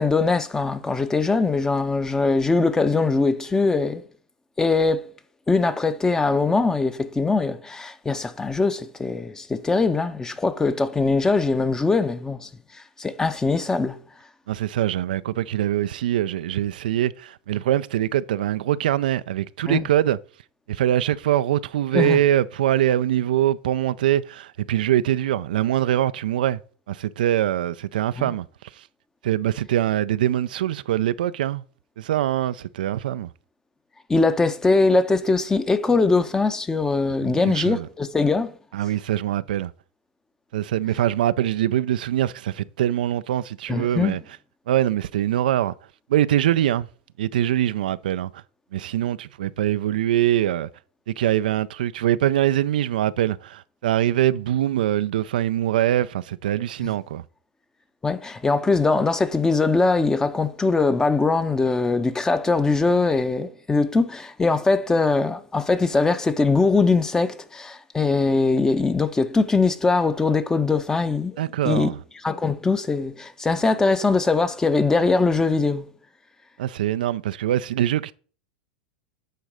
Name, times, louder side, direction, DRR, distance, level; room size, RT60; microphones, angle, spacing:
voice 1, 0.0-4.0 4.6-5.0 5.5-12.5 13.0-14.0 19.7-19.9 21.9-22.2 28.2-28.3 34.1-38.5 43.7-44.2 58.0-71.4 71.6-71.9 72.2-75.9, left 3 dB, 10° left, 0.7 m, -21 dB
voice 2, 14.5-20.2 20.7-26.6 26.9-28.8 29.2-31.6 32.0-33.3 37.2-37.9 38.7-39.7 40.5-44.2 44.7-45.7 46.1-46.9 47.2-48.4 48.7-50.7 51.1-57.2 71.4-72.0 76.6-78.1, right 12 dB, 75° right, 0.4 m, -23 dB
9.0 x 3.9 x 4.9 m
hypercardioid pair, 100°, 5 cm